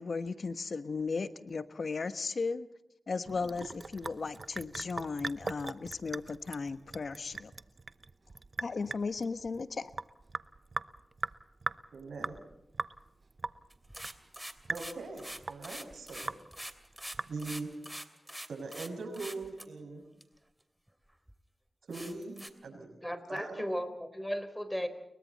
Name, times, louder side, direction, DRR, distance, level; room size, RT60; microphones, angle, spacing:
voice 1, 0.0-2.7 3.1-7.5 8.6-9.9, left 4 dB, 70° left, 12 dB, 1.2 m, -36 dB
Sink (filling or washing) / Drip, 3.3-17.7, right 3 dB, 50° right, 0.8 m, -41 dB
voice 2, 11.9-12.3 14.7-16.3 17.3-17.7 18.5-20.0 21.9-22.3 22.6-23.0 23.3-23.6, right 3 dB, 85° right, 4 dB, 6.4 m, -41 dB
sound 1, 13.7-18.9 19.1-19.6 20.2-20.3 20.9-21.0 21.3-21.4 21.9-22.5, right 1 dB, 10° right, 2.8 m, -44 dB
voice 3, 23.0-24.9, equal, 10° left, 11 dB, 4.1 m, -35 dB
30.0 x 22.5 x 4.2 m, 0.87 s
cardioid pair, 45°, 0 cm